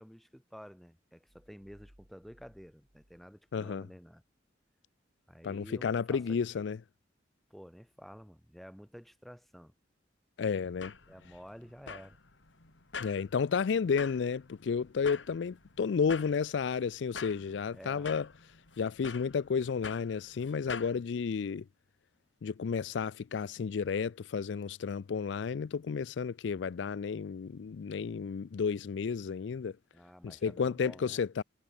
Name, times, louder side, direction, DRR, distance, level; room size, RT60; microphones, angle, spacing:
voice 1, 0.0-4.2 5.3-6.7 7.5-9.7 11.1-12.2 17.7-18.1 29.9-31.2, equal, ahead, 4.3 m, -51 dB
sound 1, 1.3-3.9, equal, 60° right, 6.9 m, -64 dB
voice 2, 3.5-3.9 5.4-6.8 10.4-10.9 13.0-18.3 18.8-21.6 22.4-29.7 30.2-31.4, left 6 dB, 70° left, 0.4 m, -32 dB
sound 2, 10.5-21.0, left 5 dB, 85° left, 2.8 m, -47 dB
head